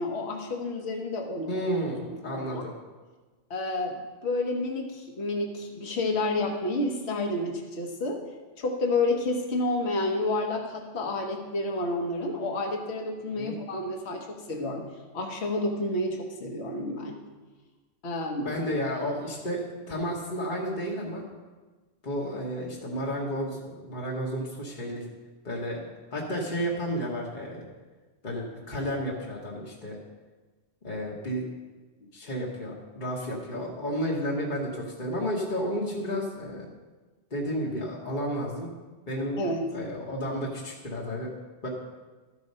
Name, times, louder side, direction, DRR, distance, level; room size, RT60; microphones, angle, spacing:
voice 1, 0.0-1.7 2.1-2.7 3.5-8.2 8.6-14.9 15.1-17.2 18.0-18.5 39.4-39.7, left 2 dB, 60° left, 2 dB, 1.3 m, -30 dB
voice 2, 1.5-2.7 13.4-13.5 18.4-21.2 22.0-25.0 25.4-27.6 28.2-30.0 30.8-31.4 32.1-36.7 37.3-38.7 39.1-39.5 39.7-41.3 41.6-41.7, equal, 40° left, -3 dB, 1.3 m, -32 dB
13.5 x 4.9 x 5.4 m, 1.3 s
omnidirectional pair, 1.3 m